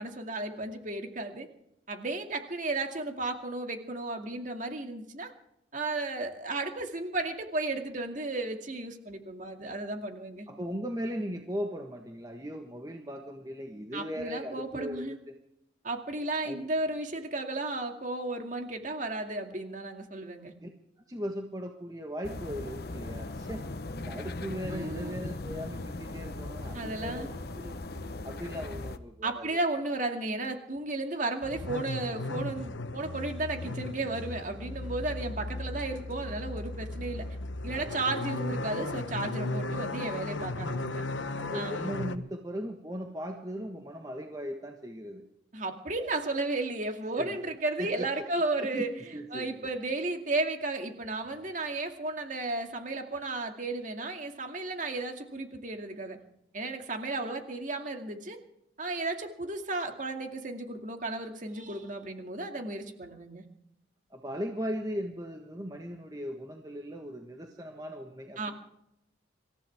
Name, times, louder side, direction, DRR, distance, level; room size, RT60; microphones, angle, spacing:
voice 1, 0.0-1.5 1.9-5.3 5.7-10.5 13.9-15.2 15.8-20.5 24.7-25.2 26.7-27.3 29.2-37.3 37.6-41.0 41.5-41.9 45.5-48.9 49.3-56.2 56.5-58.4 58.8-63.4 68.4-68.5, right 2 dB, 45° right, 4 dB, 2.3 m, -34 dB
voice 2, 10.5-15.3 16.4-16.6 20.6-20.7 21.1-23.6 23.9-27.3 27.5-27.8 28.2-29.6 41.4-45.3 47.2-47.4 47.8-48.2 48.6-49.6 64.1-68.5, equal, 20° right, 3 dB, 1.3 m, -38 dB
sound 1, 22.2-29.0, left 2 dB, 55° left, 1.0 m, -38 dB
sound 2, 31.4-42.2, left 2 dB, 85° left, 1.0 m, -36 dB
26.0 x 15.0 x 3.6 m, 0.81 s
head